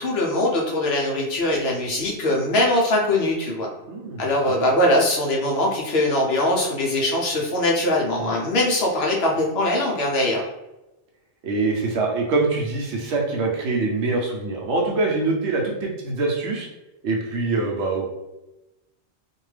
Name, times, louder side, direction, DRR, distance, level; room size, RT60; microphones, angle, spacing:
voice 1, 0.0-3.7 4.2-10.5, left 1 dB, 65° left, -2 dB, 0.9 m, -22 dB
voice 2, 3.9-4.7 8.1-8.3 11.4-16.7 17.0-18.1, right 3 dB, 75° right, -1 dB, 0.9 m, -24 dB
2.6 x 2.2 x 3.1 m, 0.98 s
omnidirectional pair, 1.2 m